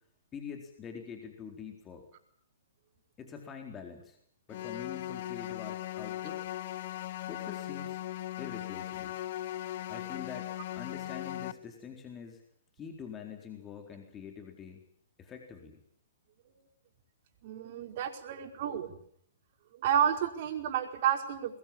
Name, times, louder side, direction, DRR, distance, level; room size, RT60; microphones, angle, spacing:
voice 1, 0.3-2.0 3.2-4.2 4.5-6.4 7.2-8.0 8.4-9.2 9.9-12.4 12.8-14.8 15.2-15.8, left 7 dB, 20° left, 3 dB, 4.2 m, -45 dB
sound 1, 4.5-11.5, left 13 dB, 55° left, 1.1 m, -38 dB
voice 2, 17.4-19.0 19.8-21.6, right 9 dB, 50° right, 4 dB, 5.1 m, -30 dB
23.5 x 21.5 x 8.8 m, 0.65 s
hypercardioid pair, 130°, 0 cm